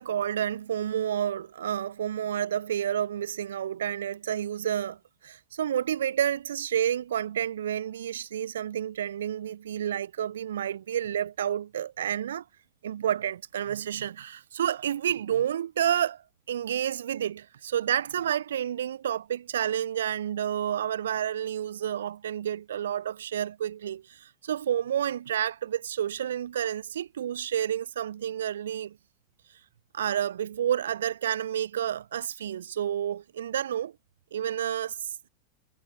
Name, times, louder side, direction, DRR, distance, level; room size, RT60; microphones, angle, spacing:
voice 1, 0.0-5.0 5.2-12.4 12.8-16.2 16.5-29.0 29.9-33.9 34.3-35.1, right 10 dB, 65° right, 7.1 m, -30 dB
figure-of-eight pair, 90°, 0 cm